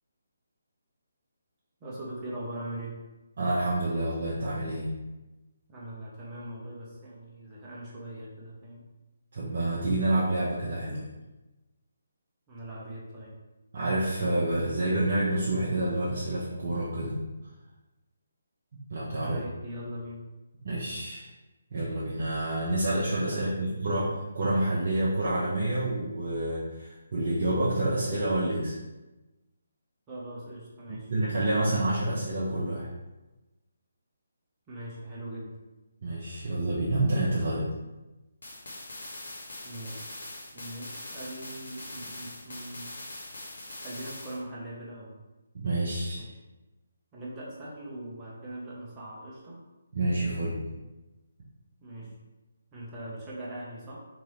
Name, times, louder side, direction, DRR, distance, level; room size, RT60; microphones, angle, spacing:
voice 1, 1.8-3.0 5.7-8.8 12.5-13.3 19.2-20.2 23.3-23.9 30.1-31.1 34.7-35.6 39.6-40.1 40.5-42.9 43.8-45.1 46.2-46.3 47.1-49.6 51.8-52.1 52.7-54.0, right 1 dB, 20° right, -6 dB, 1.0 m, -41 dB
voice 2, 3.4-4.9 9.3-11.0 13.7-17.2 18.9-19.4 20.6-21.3 21.7-28.7 30.9-32.9 36.0-37.7 45.5-46.2 49.9-50.6, right 1 dB, 55° right, -7 dB, 0.8 m, -28 dB
sound 1, 38.4-44.4, left 1 dB, 65° left, 0.9 m, -42 dB
3.7 x 3.0 x 3.1 m, 1.1 s
figure-of-eight pair, 145°, 0 cm